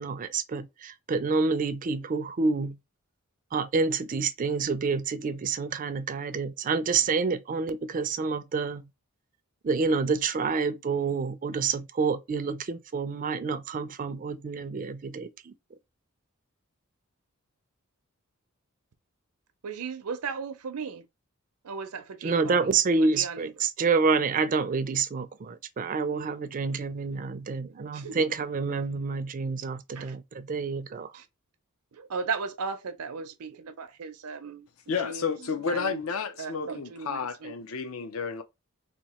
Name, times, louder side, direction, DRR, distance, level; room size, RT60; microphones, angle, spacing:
voice 1, 0.0-2.8 3.5-8.8 9.6-15.5 22.2-31.1, right 4 dB, 35° right, 0.4 m, -28 dB
voice 2, 19.6-21.0 21.6-22.7 23.0-23.5 27.5-27.6 27.9-28.2 29.9-30.1 30.9-31.2 31.9-36.0 36.4-37.5, right 5 dB, 85° right, 0.6 m, -36 dB
voice 3, 34.9-38.4, left 5 dB, 65° left, 0.5 m, -31 dB
2.9 x 2.3 x 4.2 m
head